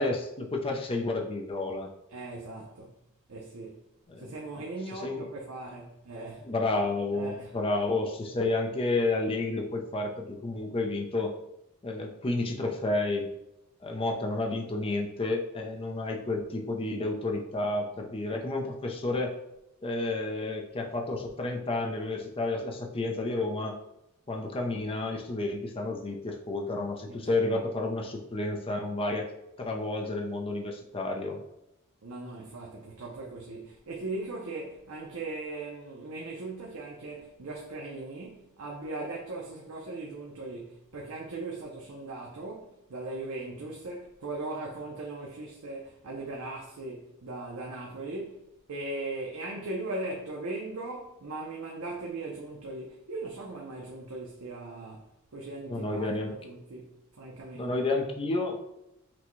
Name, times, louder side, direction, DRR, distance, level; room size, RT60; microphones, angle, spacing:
voice 1, 0.0-1.9 4.1-4.3 4.9-5.3 6.4-11.3 11.8-13.3 13.8-19.3 19.8-23.8 24.3-29.3 29.6-31.4 55.7-56.3 57.5-58.6, left 2 dB, 25° left, 0.5 m, -31 dB
voice 2, 2.1-3.0 3.3-3.8 4.2-6.5 7.1-7.6 27.1-27.5 32.0-57.8, right 2 dB, 75° right, 0.6 m, -39 dB
5.9 x 2.2 x 3.1 m
head